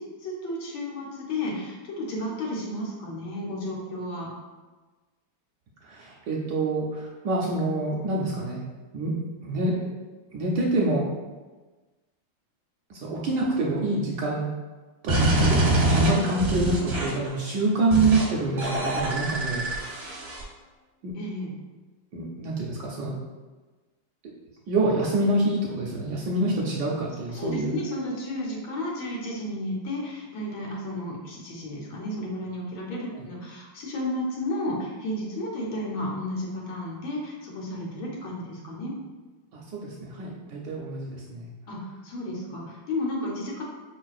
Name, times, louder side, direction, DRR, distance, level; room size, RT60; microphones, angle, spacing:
voice 1, 0.0-4.3 21.2-21.5 27.3-38.9 41.7-43.6, left 1 dB, 80° left, -3 dB, 1.6 m, -32 dB
voice 2, 5.8-8.6 8.9-9.1 9.4-9.9 10.3-11.1 12.9-14.5 15.0-20.3 21.0-21.1 22.1-23.1 24.7-27.8 39.5-41.5, right 2 dB, 75° right, -3 dB, 1.1 m, -27 dB
sound 1, 15.1-17.3 17.9-18.2 18.6-20.4, right 1 dB, 45° right, 0.8 m, -24 dB
5.1 x 3.2 x 2.3 m, 1.3 s
omnidirectional pair, 2.2 m